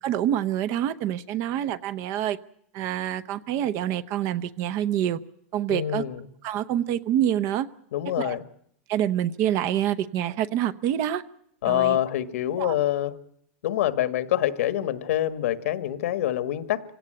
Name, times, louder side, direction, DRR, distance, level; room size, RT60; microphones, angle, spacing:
voice 1, 0.0-2.4 2.7-5.2 5.5-6.0 6.4-7.7 8.2-8.4 8.9-11.2 11.6-12.0 12.6-12.7, right 11 dB, 40° right, 14 dB, 0.8 m, -26 dB
voice 2, 5.7-6.2 7.9-8.4 11.6-13.1 13.6-16.8, left 12 dB, 75° left, 13 dB, 1.6 m, -25 dB
25.0 x 17.0 x 8.9 m, 0.71 s
supercardioid pair, 155°, 8 cm